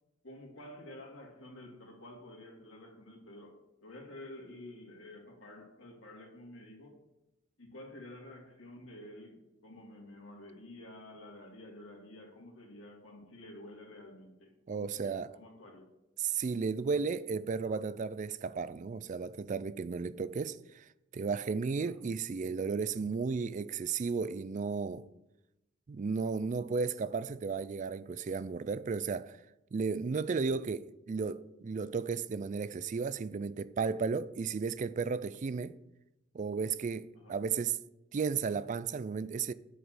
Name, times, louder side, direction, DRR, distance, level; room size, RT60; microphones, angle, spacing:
voice 1, 0.2-7.0 7.6-15.9 21.8-22.1 37.1-37.4, left 1 dB, 85° left, 2.5 m, -50 dB
voice 2, 14.7-15.4 16.2-20.9 21.1-25.1 25.9-29.4 29.7-35.8 36.3-37.8 38.1-39.5, right 5 dB, 40° right, 0.3 m, -34 dB
8.0 x 5.1 x 7.6 m
head